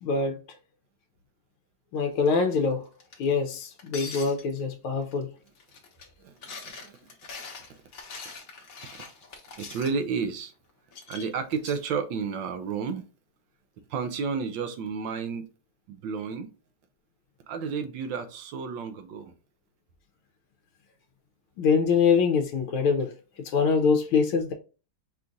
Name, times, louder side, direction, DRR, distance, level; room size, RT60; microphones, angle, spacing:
voice 1, 0.0-0.4 1.9-2.9 3.2-5.3 21.6-23.1 23.5-24.5, left 5 dB, 75° left, 1.5 m, -24 dB
sound 1, 2.3-2.5 3.0-3.2 3.8-4.6 5.1-5.2 5.5-6.1 6.4-9.9 10.9-11.8, left 4 dB, 50° left, 1.3 m, -42 dB
voice 2, 6.2-7.8 8.2-8.3 8.9-9.1 9.6-10.5 11.1-13.0 13.9-15.5 15.9-16.5 17.5-19.3, right 5 dB, 70° right, 1.2 m, -32 dB
5.7 x 2.4 x 3.8 m
omnidirectional pair, 2.4 m